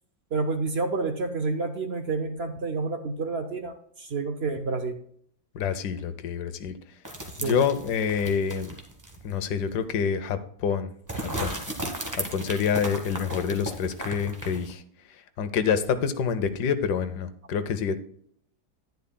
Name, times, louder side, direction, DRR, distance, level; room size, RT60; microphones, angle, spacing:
voice 1, 0.3-5.0 7.4-7.6, right 3 dB, 55° right, 7 dB, 0.8 m, -29 dB
voice 2, 5.5-6.8 7.4-8.7 9.2-10.9 11.2-11.5 12.2-14.8 15.4-18.0, left 6 dB, 90° left, 12 dB, 1.4 m, -27 dB
sound 1, 7.0-9.3 9.7-9.8 11.1-14.7, right 1 dB, 15° right, 1.0 m, -35 dB
10.5 x 10.5 x 2.2 m, 0.64 s
omnidirectional pair, 1.7 m